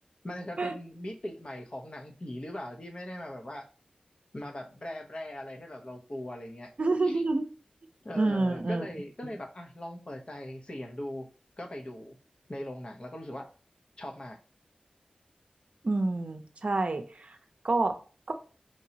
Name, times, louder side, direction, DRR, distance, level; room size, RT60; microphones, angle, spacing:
voice 1, 0.2-3.6 4.3-6.7 7.0-7.2 8.0-11.3 11.6-12.2 12.5-13.5 14.0-14.4, left 1 dB, 45° left, 3 dB, 0.8 m, -40 dB
voice 2, 6.8-7.5 8.1-8.9 15.8-17.4 17.6-17.9 18.3-18.4, right 2 dB, 55° right, 6 dB, 0.6 m, -28 dB
4.6 x 2.9 x 2.8 m, 0.36 s
wide cardioid pair, 50°, 3 cm